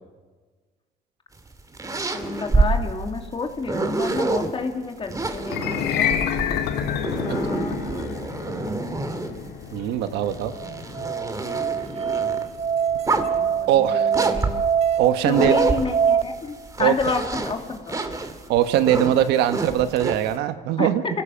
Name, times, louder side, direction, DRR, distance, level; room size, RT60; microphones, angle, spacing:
sound 1, 1.4-4.5 5.1-9.5 10.1-12.4 12.9-13.5 14.1-16.3 16.7-20.3, right 3 dB, 20° right, 2.2 m, -27 dB
voice 1, 2.1-6.1 7.2-7.8 13.3-14.6 15.2-18.0 20.8-20.9, left 4 dB, 30° left, 4 dB, 2.8 m, -29 dB
sound 2, 5.4-15.7, left 8 dB, 75° left, 1.7 m, -30 dB
voice 2, 9.7-10.5 13.7-14.1 15.0-15.6 16.8-16.9 18.5-21.0, right 11 dB, 85° right, 10 dB, 1.3 m, -21 dB
Musical instrument, 10.5-16.2, right 8 dB, 40° right, 0.9 m, -24 dB
28.0 x 17.0 x 7.3 m, 1.4 s
cardioid pair, 110°, 17 cm